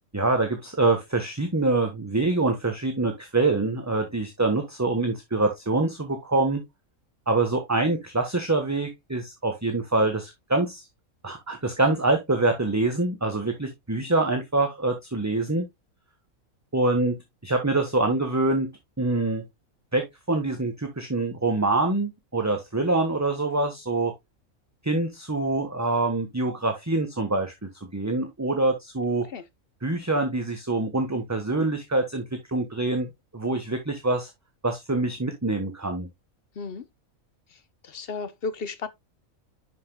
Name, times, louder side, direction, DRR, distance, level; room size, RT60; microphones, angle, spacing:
voice 1, 0.1-6.6 7.3-10.8 11.2-15.7 16.7-18.7 19.0-19.4 19.9-24.1 24.8-29.3 29.8-33.1 33.3-34.3 34.6-36.1, right 2 dB, 15° right, 1.2 m, -25 dB
voice 2, 37.8-38.9, left 4 dB, 45° left, 1.0 m, -33 dB
10.5 x 5.9 x 2.2 m
omnidirectional pair, 1.4 m